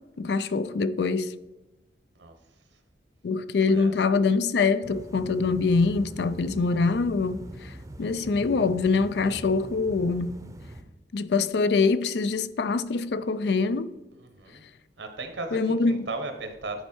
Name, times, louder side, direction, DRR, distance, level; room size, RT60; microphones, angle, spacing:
voice 1, 0.2-1.3 3.2-7.7 8.0-10.3 11.1-13.9 15.5-16.0, left 4 dB, 65° left, 0.4 m, -24 dB
voice 2, 3.6-4.0 14.1-14.6 15.0-16.8, right 3 dB, 80° right, 1.2 m, -37 dB
sound 1, 4.8-10.8, right 1 dB, 15° right, 0.6 m, -43 dB
10.5 x 4.5 x 4.4 m
head